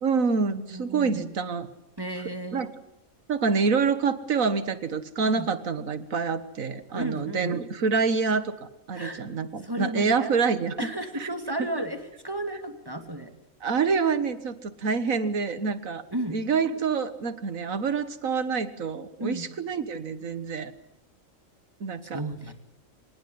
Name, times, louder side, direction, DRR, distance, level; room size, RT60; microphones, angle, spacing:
voice 1, 0.0-1.7 2.5-2.7 3.3-10.8 11.2-11.3 13.6-16.0 16.3-20.7 21.8-22.2, right 5 dB, 80° right, 13 dB, 1.9 m, -27 dB
voice 2, 0.7-1.3 2.0-2.7 5.3-5.5 6.9-7.5 8.9-9.2 9.6-10.3 10.8-12.0 12.2-13.3 16.1-16.4 19.2-19.5 22.1-22.5, right 1 dB, 15° right, 7 dB, 2.5 m, -33 dB
25.5 x 20.0 x 9.5 m, 0.82 s
omnidirectional pair, 1.4 m